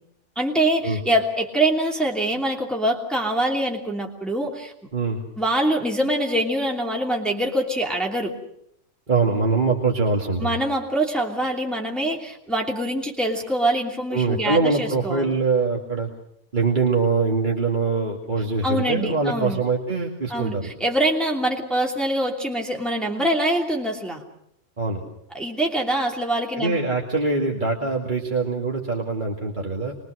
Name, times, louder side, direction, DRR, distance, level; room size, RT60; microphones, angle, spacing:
voice 1, 0.4-4.7 5.4-8.4 10.4-15.4 18.6-19.6 20.3-24.2 25.3-26.8, right 1 dB, ahead, -1 dB, 2.9 m, -24 dB
voice 2, 4.9-5.2 9.1-10.6 14.1-16.1 16.5-20.7 24.8-25.0 26.6-30.0, right 4 dB, 35° right, -1 dB, 2.4 m, -23 dB
27.0 x 22.5 x 6.4 m, 0.75 s
omnidirectional pair, 1.5 m